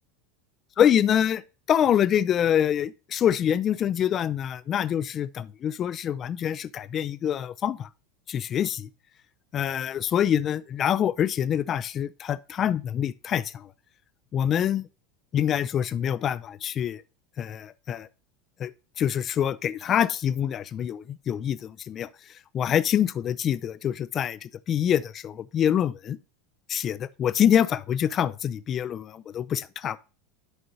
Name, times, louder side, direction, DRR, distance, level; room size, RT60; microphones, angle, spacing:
voice 1, 0.8-1.4 1.7-7.9 8.3-8.9 9.5-13.7 14.3-14.9 15.3-17.0 17.4-18.1 18.6-18.7 19.0-22.1 22.5-26.2 26.7-30.0, left 9 dB, 35° left, 0.4 m, -25 dB
11.5 x 4.9 x 2.7 m
figure-of-eight pair, 80°, 0 cm